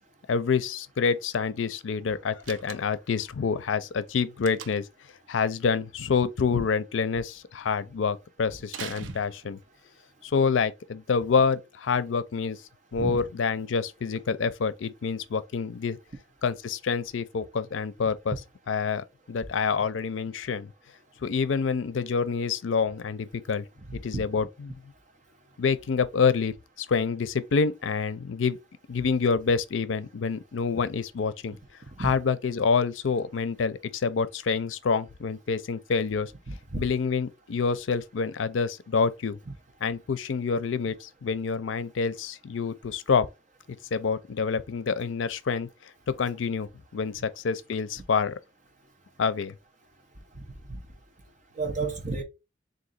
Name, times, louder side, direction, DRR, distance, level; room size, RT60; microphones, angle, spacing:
voice 1, 0.3-4.9 5.3-9.6 10.2-12.6 12.9-16.0 16.4-18.4 18.7-20.7 21.2-23.6 23.9-24.8 25.6-28.6 28.9-31.6 32.0-36.3 36.8-39.4 39.8-43.3 43.7-45.7 46.1-46.7 46.9-48.3 49.2-49.5, left 5 dB, 80° left, 0.5 m, -27 dB
Slam, 2.4-3.1 4.4-5.0 8.7-9.8, right 8 dB, 75° right, 0.4 m, -42 dB
voice 2, 36.5-36.8 50.7-50.8 51.6-52.2, right 3 dB, 40° right, 0.9 m, -31 dB
3.8 x 2.7 x 4.1 m
head